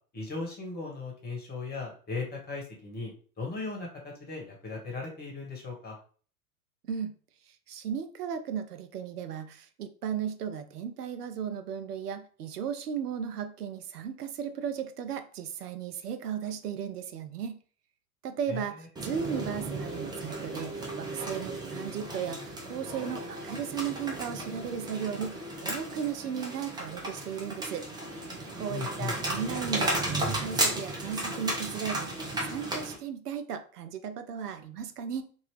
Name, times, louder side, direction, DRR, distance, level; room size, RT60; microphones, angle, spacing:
voice 1, 0.1-6.0 18.5-18.9 28.7-29.1, left 3 dB, 20° left, -1 dB, 1.3 m, -37 dB
voice 2, 7.5-17.6 18.2-27.9 28.2-35.2, right 8 dB, 85° right, 9 dB, 0.6 m, -36 dB
sound 1, 19.0-33.0, right 1 dB, 10° right, 0.7 m, -34 dB
2.8 x 2.6 x 3.2 m, 0.42 s
hypercardioid pair, 95°, 45 cm